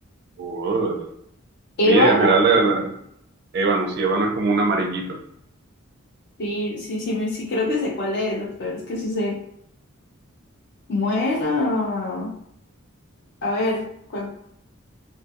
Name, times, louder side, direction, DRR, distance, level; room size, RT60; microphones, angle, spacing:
voice 1, 0.4-1.1 1.8-2.9 3.5-5.2, right 3 dB, 50° right, 3 dB, 0.4 m, -21 dB
voice 2, 1.8-2.3 6.4-9.4 10.9-12.3 13.4-14.3, left 2 dB, 50° left, -2 dB, 0.4 m, -24 dB
2.2 x 2.2 x 2.7 m, 0.74 s
head